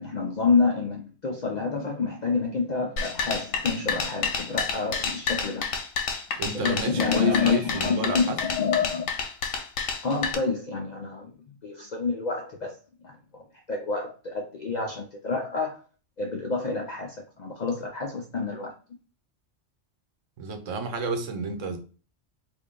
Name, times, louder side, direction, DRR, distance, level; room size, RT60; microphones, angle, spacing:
voice 1, 0.0-5.7 6.5-9.1 10.0-11.3 11.6-15.8 16.2-18.7, left 4 dB, 65° left, 0.4 m, -28 dB
sound 1, 3.0-10.3, left 5 dB, 90° left, 1.0 m, -29 dB
voice 2, 6.4-8.4 20.4-21.8, right 3 dB, 80° right, 1.1 m, -31 dB
3.5 x 2.2 x 3.6 m
omnidirectional pair, 1.3 m